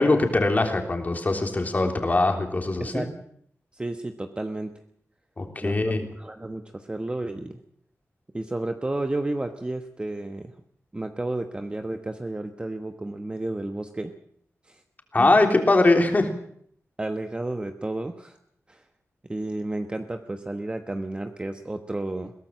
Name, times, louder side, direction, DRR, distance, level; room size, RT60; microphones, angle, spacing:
voice 1, 0.0-3.0 5.4-6.1 15.1-16.3, left 2 dB, 30° left, 4 dB, 3.3 m, -21 dB
voice 2, 3.7-4.7 5.6-7.6 8.3-10.5 10.9-14.1 14.7-14.8 15.2-15.3 17.0-18.4 18.7-18.8 19.3-22.3, right 2 dB, 20° right, 6 dB, 1.2 m, -32 dB
22.0 x 17.5 x 7.5 m, 0.66 s
wide cardioid pair, 125°, 5 cm